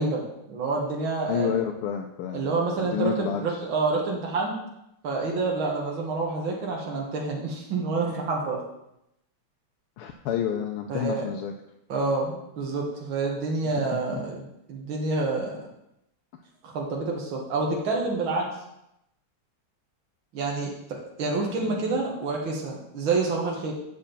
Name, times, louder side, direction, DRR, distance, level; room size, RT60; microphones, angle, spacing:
voice 1, 0.0-1.5 2.3-4.5 5.0-8.6 10.9-11.3 11.9-14.4 14.7-15.6 16.6-18.5 20.3-23.7, right 3 dB, 65° right, -2 dB, 2.4 m, -28 dB
voice 2, 1.3-2.5 2.8-3.6 10.0-11.5 13.7-14.2 21.6-22.0, left 8 dB, 85° left, 3 dB, 1.6 m, -30 dB
7.8 x 6.1 x 6.9 m, 0.83 s
omnidirectional pair, 2.4 m